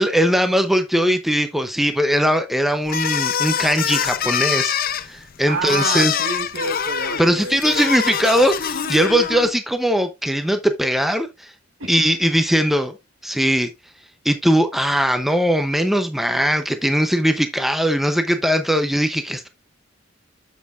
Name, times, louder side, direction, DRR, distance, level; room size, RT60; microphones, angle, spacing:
voice 1, 0.0-6.1 7.2-11.5 11.9-12.9 13.2-13.7 14.2-19.5, equal, ahead, 0.6 m, -20 dB
sound 1, 2.9-9.5, left 8 dB, 45° left, 0.5 m, -24 dB
voice 2, 5.5-7.6 11.8-11.9, right 3 dB, 75° right, 2.1 m, -28 dB
8.0 x 7.3 x 2.4 m
head